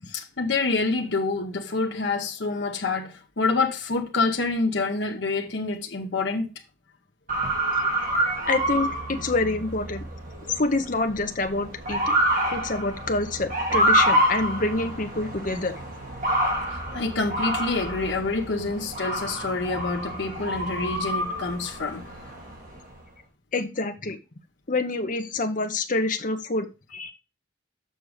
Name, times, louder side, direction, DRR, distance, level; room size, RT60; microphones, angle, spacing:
voice 1, 0.1-6.5 16.7-22.1, left 3 dB, 65° left, 0.9 m, -27 dB
Motor vehicle (road) / Siren, 7.3-22.9, right 1 dB, 45° right, 3.1 m, -27 dB
voice 2, 8.1-10.0 10.5-12.1 12.5-15.7 23.5-24.2 24.7-27.1, left 2 dB, 45° left, 1.0 m, -27 dB
6.8 x 6.2 x 4.8 m
head